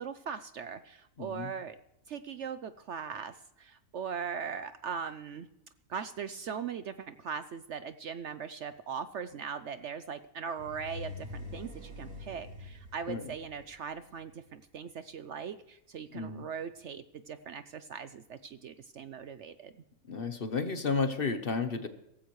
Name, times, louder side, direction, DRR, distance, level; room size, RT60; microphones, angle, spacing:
voice 1, 0.0-1.8 2.1-5.5 5.9-19.7, right 7 dB, 60° right, 12 dB, 0.8 m, -40 dB
voice 2, 1.2-1.5 13.1-13.3 16.1-16.4 20.1-21.9, left 4 dB, 45° left, 9 dB, 1.0 m, -32 dB
sound 1, 10.6-14.5, left 2 dB, 85° right, 2.7 m, -45 dB
17.5 x 15.0 x 3.1 m, 0.84 s
omnidirectional pair, 1.6 m